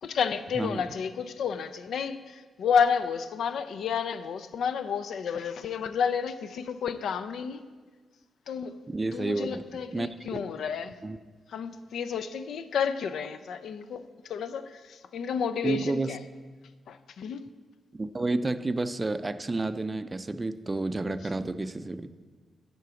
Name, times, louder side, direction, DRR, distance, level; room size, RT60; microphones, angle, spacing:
voice 1, 0.0-7.6 8.5-8.7 9.1-11.0 11.5-16.2 16.9-17.4, left 6 dB, 80° left, 11 dB, 0.4 m, -31 dB
voice 2, 8.9-10.4 11.0-11.2 15.6-16.1 17.9-22.1, right 2 dB, 25° right, 12 dB, 0.4 m, -30 dB
10.5 x 3.8 x 6.9 m, 1.4 s
cardioid pair, 85°, 0 cm